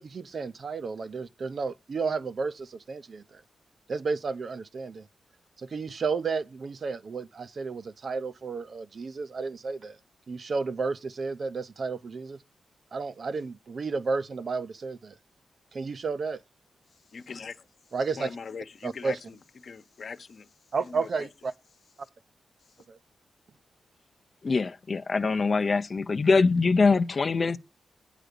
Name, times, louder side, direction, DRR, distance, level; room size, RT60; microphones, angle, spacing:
voice 1, 0.0-3.4 3.9-5.1 5.6-10.0 10.3-12.4 12.9-15.1 15.7-16.4 17.9-18.3 18.8-19.2 20.7-21.5 22.9-23.0, right 4 dB, 50° right, 0.6 m, -32 dB
voice 2, 17.1-17.7 18.2-20.5 20.8-21.3, left 5 dB, 55° left, 1.0 m, -41 dB
voice 3, 24.4-27.6, left 4 dB, 35° left, 0.6 m, -23 dB
9.0 x 5.0 x 6.7 m
wide cardioid pair, 130°, 0 cm